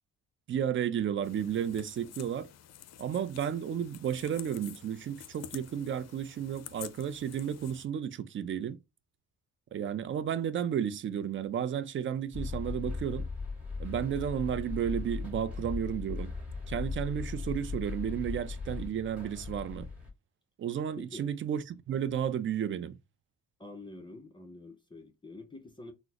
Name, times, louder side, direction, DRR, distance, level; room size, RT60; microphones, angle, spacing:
voice 1, 0.5-2.5 3.0-8.8 9.7-13.3 13.8-16.3 16.7-19.9 20.6-23.0, right 9 dB, 40° right, 0.4 m, -33 dB
sound 1, 1.2-7.9, left 11 dB, 60° left, 0.5 m, -49 dB
sound 2, 12.3-20.1, left 4 dB, 5° right, 1.7 m, -38 dB
voice 2, 21.0-21.3 23.6-25.9, left 2 dB, 15° left, 0.6 m, -47 dB
3.9 x 2.0 x 2.9 m
cardioid pair, 90°, 30 cm